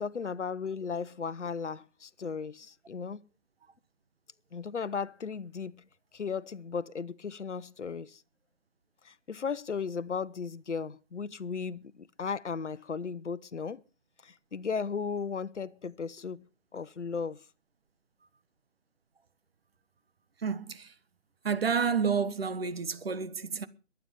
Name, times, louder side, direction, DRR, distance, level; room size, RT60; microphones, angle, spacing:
voice 1, 0.0-3.2 4.5-5.8 6.1-8.2 9.0-13.8 14.2-16.4 16.7-17.4, left 5 dB, 70° left, 1.0 m, -36 dB
voice 2, 20.4-20.9 21.4-23.7, right 6 dB, 55° right, 1.4 m, -30 dB
22.5 x 9.2 x 5.4 m
figure-of-eight pair, 155°, 36 cm